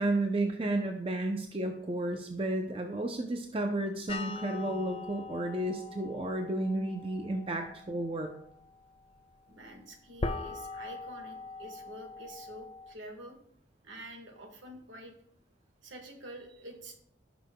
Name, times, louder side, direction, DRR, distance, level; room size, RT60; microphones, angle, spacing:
voice 1, 0.0-8.3, right 1 dB, 30° right, 4 dB, 0.5 m, -32 dB
sound 1, 4.1-12.9, left 3 dB, 25° left, 0.4 m, -42 dB
voice 2, 9.5-13.4 13.8-15.1 15.8-17.0, right 1 dB, 70° right, 4 dB, 1.6 m, -47 dB
15.0 x 6.1 x 2.2 m, 0.69 s
head